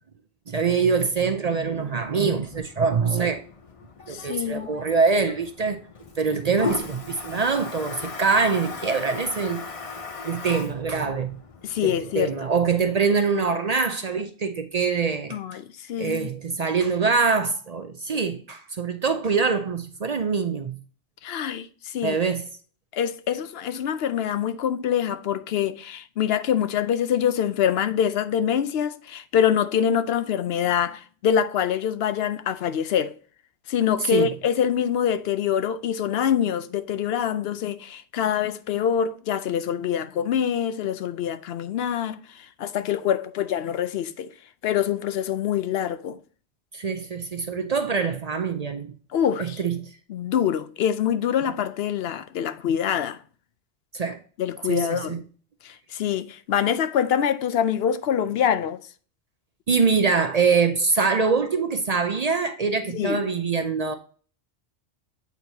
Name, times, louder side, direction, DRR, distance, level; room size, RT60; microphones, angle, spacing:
voice 1, 0.5-3.4 4.1-5.8 6.2-9.7 10.2-11.3 11.8-15.4 16.0-20.8 22.0-22.5 34.1-34.3 46.7-48.9 49.4-49.8 53.9-54.2 54.7-55.2 59.7-63.9, right 5 dB, 45° right, 0.6 m, -24 dB
Toilet flush, 1.6-13.2, left 5 dB, 40° left, 0.7 m, -38 dB
voice 2, 4.1-4.7 11.6-12.3 15.3-16.3 21.2-22.2 22.9-33.2 33.7-44.3 44.6-46.2 49.1-49.6 50.1-53.2 54.4-55.2 55.6-58.8 62.9-63.2, left 9 dB, 70° left, 0.8 m, -25 dB
8.2 x 4.4 x 2.7 m
omnidirectional pair, 1.1 m